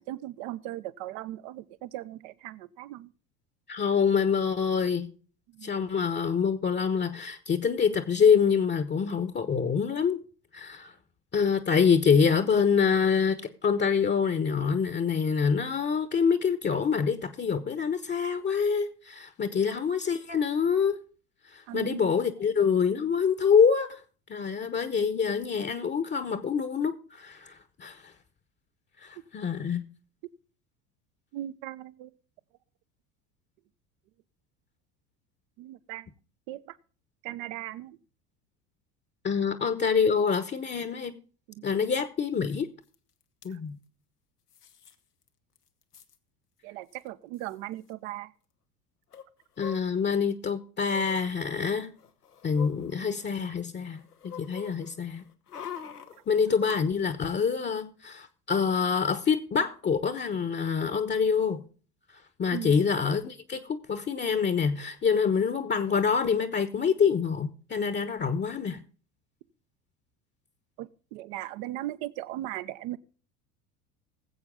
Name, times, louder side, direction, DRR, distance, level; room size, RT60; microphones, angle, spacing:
voice 1, 0.0-3.1 5.5-5.7 21.7-22.3 31.3-32.1 35.6-36.1 36.5-36.8 37.2-38.0 41.5-41.8 43.5-43.6 46.6-48.3 62.5-62.9 70.8-73.0, right 15 dB, 55° right, 0.9 m, -38 dB
voice 2, 3.7-5.1 5.6-10.2 10.5-10.9 11.3-21.0 21.5-24.0 24.3-28.0 29.0-29.8 39.2-41.2 41.6-42.7 43.4-43.8 49.6-51.9 52.4-55.2 56.3-61.6 62.4-68.8, left 6 dB, 25° left, 1.0 m, -26 dB
sound 1, 42.9-43.0 43.2-43.5 44.5-44.9 45.3-45.4 45.6-46.2 47.0-47.1 47.3-47.5 49.1-50.3 50.8-51.2 51.8-53.5 53.8-56.8 57.1-57.2, left 8 dB, 90° left, 1.0 m, -45 dB
19.5 x 7.9 x 3.7 m
figure-of-eight pair, 75°, 45 cm